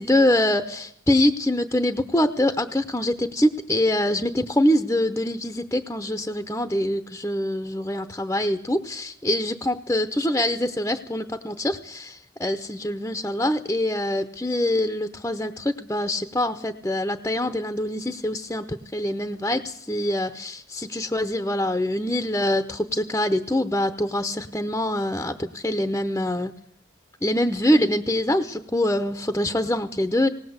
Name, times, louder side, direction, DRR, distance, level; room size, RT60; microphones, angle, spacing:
voice 1, 0.0-26.5 27.2-30.3, left 1 dB, 15° left, 8 dB, 0.8 m, -24 dB
19.0 x 18.5 x 8.0 m, 0.64 s
head